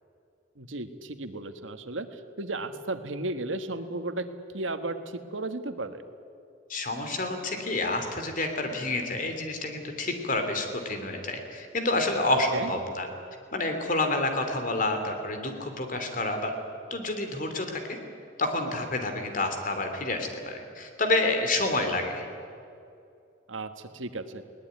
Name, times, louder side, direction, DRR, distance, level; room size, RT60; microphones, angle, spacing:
voice 1, 0.6-4.3 4.5-6.0 12.5-12.7 23.5-24.4, right 2 dB, 85° right, 9 dB, 1.5 m, -34 dB
voice 2, 6.7-13.1 13.5-16.5 16.9-18.0 18.4-22.2, left 2 dB, 45° left, 5 dB, 3.0 m, -29 dB
21.0 x 18.5 x 9.4 m, 2.5 s
head